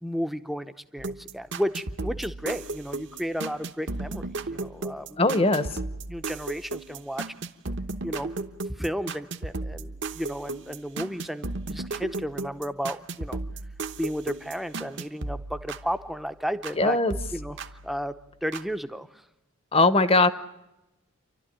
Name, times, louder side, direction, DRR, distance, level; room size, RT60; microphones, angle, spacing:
voice 1, 0.0-5.5 6.1-7.2 8.0-8.3 8.8-13.4 14.0-17.0 17.3-18.1 18.4-19.2, equal, ahead, 10 dB, 0.7 m, -33 dB
sound 1, 1.0-16.8 17.1-18.7, right 3 dB, 55° right, 1.1 m, -36 dB
voice 2, 5.2-5.7 16.8-17.1 19.7-20.3, left 2 dB, 25° left, 13 dB, 0.9 m, -20 dB
29.0 x 12.5 x 10.0 m, 0.95 s
head